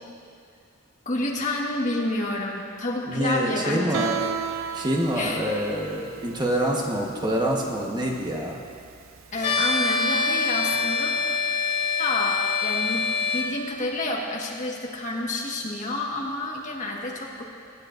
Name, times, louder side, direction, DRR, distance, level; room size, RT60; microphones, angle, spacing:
voice 1, 1.0-4.1 5.1-5.4 9.3-11.2 12.0-17.4, left 2 dB, 40° left, -2 dB, 1.5 m, -29 dB
voice 2, 3.1-4.2 4.7-8.6, right 1 dB, 20° right, -1 dB, 1.2 m, -26 dB
Guitar, 3.9-9.6, right 7 dB, 85° right, 0.5 m, -35 dB
sound 1, 9.4-13.5, left 4 dB, 60° left, 2.4 m, -25 dB
22.0 x 9.7 x 2.6 m, 2.4 s
head